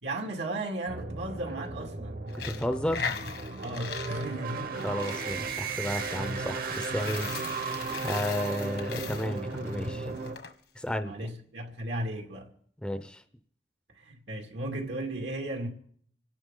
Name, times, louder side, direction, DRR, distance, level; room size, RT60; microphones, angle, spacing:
voice 1, 0.0-2.2 3.6-4.9 7.3-7.5 11.0-12.5 13.9-15.7, right 1 dB, 85° right, 2.3 m, -35 dB
sound 1, 0.9-10.4, right 4 dB, 55° right, 1.2 m, -35 dB
Coin (dropping), 2.3-10.5, left 6 dB, 70° left, 1.5 m, -40 dB
voice 2, 2.4-3.1 4.8-7.3 8.0-10.2 10.8-11.1 12.8-13.2, left 1 dB, 5° left, 0.6 m, -32 dB
26.5 x 11.5 x 3.8 m
head